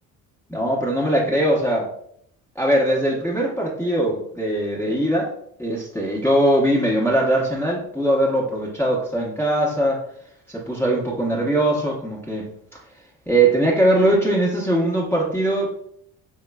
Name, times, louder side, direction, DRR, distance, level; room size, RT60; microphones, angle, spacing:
voice 1, 0.5-1.9 2.5-10.0 10.5-12.5 13.3-15.7, right 1 dB, 5° left, -5 dB, 1.0 m, -21 dB
5.5 x 3.0 x 2.3 m, 0.68 s
hypercardioid pair, 55°, 42 cm